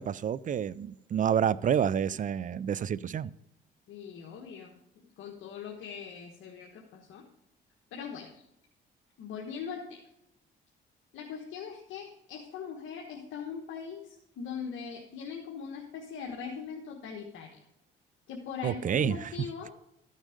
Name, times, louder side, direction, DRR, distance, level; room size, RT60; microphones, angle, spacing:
voice 1, 0.0-3.3 18.6-19.3, right 8 dB, 40° right, 21 dB, 0.4 m, -29 dB
voice 2, 3.9-7.2 7.9-8.4 9.2-10.0 11.1-17.5 18.3-19.7, left 6 dB, 80° left, 0 dB, 1.4 m, -41 dB
13.5 x 6.4 x 5.1 m, 0.83 s
cardioid pair, 90°, 20 cm